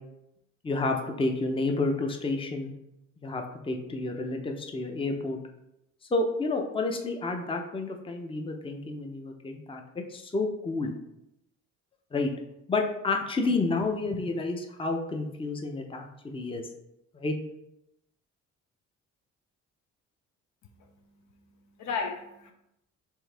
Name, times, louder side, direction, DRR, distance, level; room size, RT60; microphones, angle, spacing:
voice 1, 0.6-2.7 3.2-5.4 6.1-10.9 12.1-12.3 12.7-16.7 17.1-17.3, left 3 dB, 20° left, 3 dB, 0.6 m, -30 dB
voice 2, 20.6-22.5, left 5 dB, 70° left, 4 dB, 0.8 m, -37 dB
4.6 x 3.4 x 3.4 m, 0.84 s
cardioid pair, 90°, 30 cm